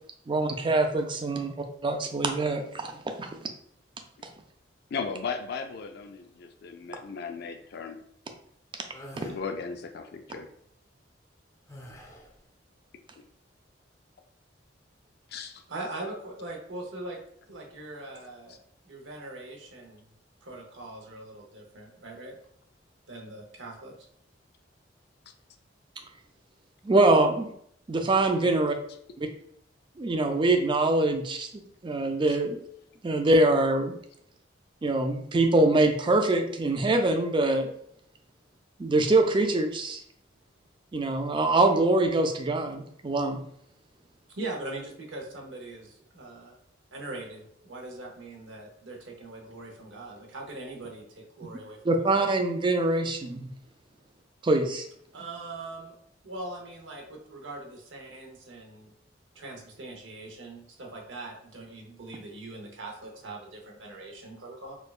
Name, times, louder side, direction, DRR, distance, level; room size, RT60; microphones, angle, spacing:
voice 1, 0.3-1.5 1.8-3.3 9.1-9.3 26.8-27.5 27.9-28.8 30.0-31.5 31.8-32.6 33.0-34.0 34.8-37.7 38.8-40.0 40.9-43.4 51.8-53.5 54.4-54.8, right 2 dB, 25° right, 4 dB, 0.3 m, -24 dB
voice 2, 4.9-8.0 9.2-10.5 15.3-15.6 18.5-18.6 32.3-32.4, left 5 dB, 55° left, 6 dB, 0.4 m, -36 dB
sound 1, 8.9-9.4 11.7-12.4, equal, 15° left, 0.6 m, -46 dB
voice 3, 15.7-17.2 17.5-20.0 20.4-22.4 23.1-23.9 44.3-45.9 46.1-46.5 46.9-52.1 55.1-55.9 56.2-58.9 59.3-64.8, right 2 dB, 75° right, 0 dB, 0.8 m, -41 dB
4.3 x 2.3 x 2.4 m, 0.69 s
head